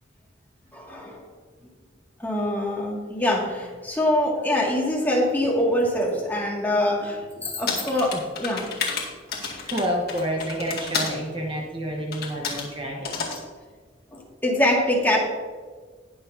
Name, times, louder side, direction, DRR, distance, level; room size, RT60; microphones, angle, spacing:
voice 1, 0.7-1.2 2.2-8.6 14.1-15.2, left 1 dB, 10° left, -3 dB, 2.1 m, -24 dB
sound 1, 7.7-11.2 12.1-12.7 13.0-13.4, left 5 dB, 55° left, 2.1 m, -30 dB
voice 2, 9.4-13.6, equal, 30° right, 0 dB, 1.1 m, -29 dB
19.5 x 6.6 x 2.7 m, 1.5 s
head